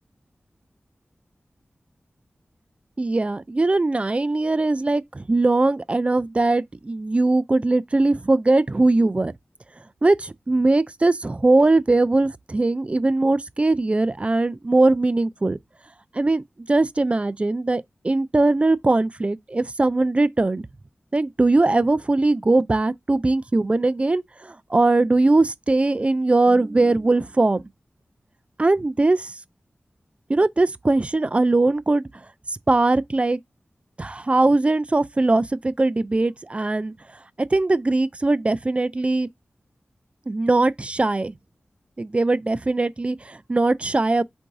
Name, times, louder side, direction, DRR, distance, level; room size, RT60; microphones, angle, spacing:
voice 1, 3.0-9.3 10.0-15.6 16.1-16.4 16.7-20.7 21.1-27.6 28.6-29.3 30.3-32.0 32.7-33.4 34.0-36.9 37.5-39.3 40.3-41.3 42.0-44.2, right 2 dB, 30° right, 0.3 m, -20 dB
3.8 x 2.6 x 4.6 m
wide cardioid pair, 80°, 4 cm